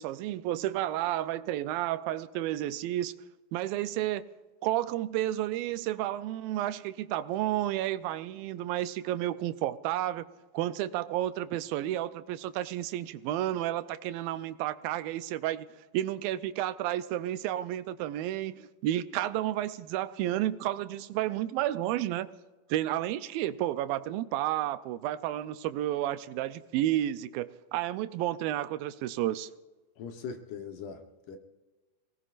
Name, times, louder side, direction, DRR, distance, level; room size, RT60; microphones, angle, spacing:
voice 1, 0.0-3.1 3.5-4.3 4.6-10.3 10.5-15.7 15.9-22.3 22.7-29.5, right 13 dB, 85° right, 2.4 m, -31 dB
voice 2, 30.0-31.4, left 6 dB, 70° left, 2.5 m, -41 dB
26.5 x 18.5 x 2.5 m
omnidirectional pair, 4.1 m